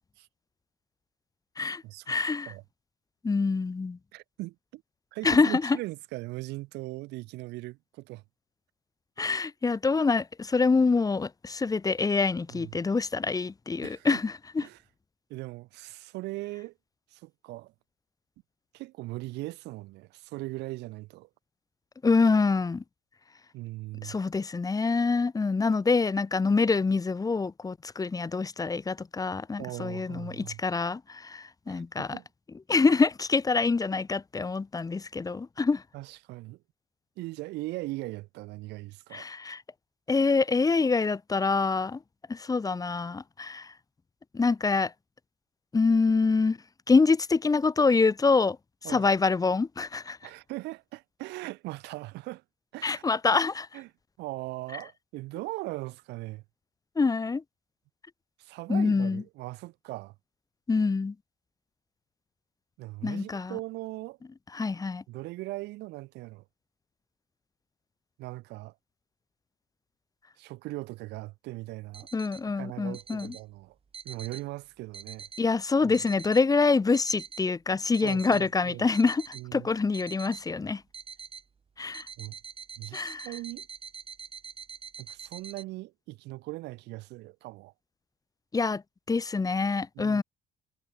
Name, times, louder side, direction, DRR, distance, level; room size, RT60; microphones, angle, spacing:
voice 1, 1.6-2.5 3.2-4.0 5.2-5.8 9.2-14.6 22.0-22.8 24.0-32.2 32.7-35.8 39.1-39.6 40.1-42.0 42.3-43.7 44.3-44.9 45.7-46.6 46.9-48.6 48.9-50.2 52.8-53.7 57.0-57.4 58.7-59.2 60.7-61.1 63.0-63.6 64.5-65.0 72.1-73.3 75.4-80.8 81.8-82.1 82.9-83.3 88.5-88.8 89.1-90.2, left 4 dB, 20° left, 1.3 m, -26 dB
voice 2, 4.1-4.8 5.1-8.2 12.5-12.8 13.8-14.2 14.6-14.8 15.3-16.7 17.1-17.7 18.7-21.3 23.5-24.2 29.6-30.6 31.7-32.2 35.9-36.6 37.2-39.3 48.8-49.1 50.2-52.4 52.7-53.0 53.7-53.9 54.2-56.4 58.4-60.1 62.8-64.2 65.1-66.4 68.2-68.7 70.4-72.1 72.6-73.7 74.0-75.3 75.8-75.9 78.0-78.9 79.3-79.7 82.2-82.4 82.8-83.7 85.0-87.7 89.9-90.2, right 20 dB, 85° right, 1.7 m, -39 dB
sound 1, 71.9-72.4 72.9-73.4 73.9-74.4 74.9-75.4 75.9-76.4 76.9-77.4 77.9-78.4 78.9-79.4 79.9-80.4 80.9-81.4 81.9-85.6, right 6 dB, 35° right, 4.8 m, -44 dB
cardioid pair, 110°, 17 cm